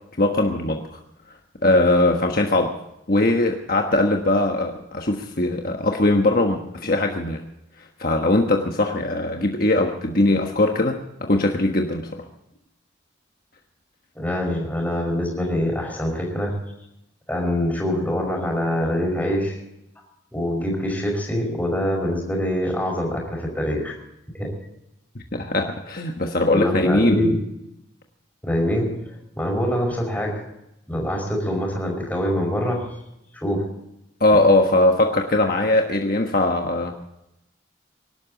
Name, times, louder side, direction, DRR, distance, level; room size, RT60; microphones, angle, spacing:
voice 1, 0.2-1.0 1.6-2.8 3.1-7.4 8.0-12.2 25.3-27.3 34.2-36.9, left 2 dB, 50° left, 2 dB, 1.4 m, -20 dB
voice 2, 14.2-16.6 17.3-19.6 20.3-24.0 24.4-24.5 26.5-27.5 28.4-29.0 29.3-30.4 30.9-32.9 33.3-33.7, equal, 10° left, 0 dB, 5.2 m, -24 dB
25.0 x 12.5 x 4.0 m, 0.84 s
head